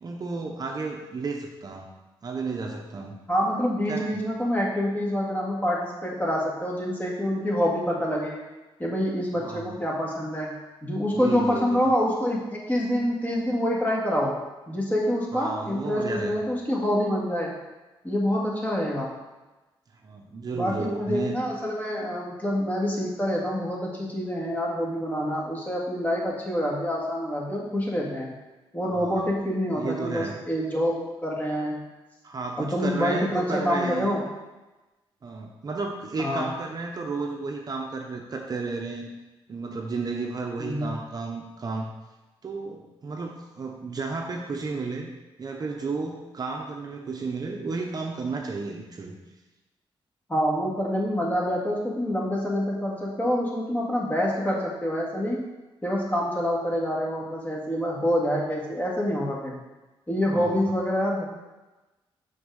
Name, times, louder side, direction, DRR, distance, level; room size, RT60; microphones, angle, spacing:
voice 1, 0.0-1.9 2.2-3.2 3.9-4.1 9.4-9.8 11.1-11.8 15.3-16.4 20.0-21.4 28.9-29.3 29.7-30.4 32.2-34.2 35.2-39.1 39.5-41.9 42.4-45.1 45.4-49.2 60.3-60.6, right 4 dB, 40° right, 2 dB, 0.9 m, -33 dB
voice 2, 3.3-8.4 8.8-10.6 10.8-14.4 14.7-17.5 18.0-19.1 20.5-28.3 28.7-31.8 32.6-34.2 36.2-36.5 40.6-40.9 50.3-55.4 55.8-59.6 60.1-61.3, equal, 15° left, -3 dB, 2.0 m, -26 dB
6.1 x 4.8 x 6.4 m, 1.1 s
cardioid pair, 105°, 10 cm